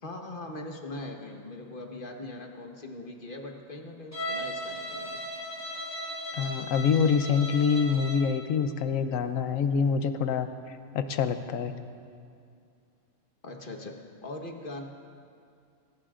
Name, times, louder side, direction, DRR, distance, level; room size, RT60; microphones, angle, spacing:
voice 1, 0.0-5.2 13.4-14.8, left 2 dB, 40° left, 2 dB, 1.4 m, -41 dB
Bowed string instrument, 4.1-8.3, equal, 25° left, 4.6 m, -37 dB
voice 2, 6.4-11.7, left 6 dB, 70° left, 9 dB, 1.1 m, -26 dB
21.5 x 19.0 x 2.5 m, 2.3 s
omnidirectional pair, 1.4 m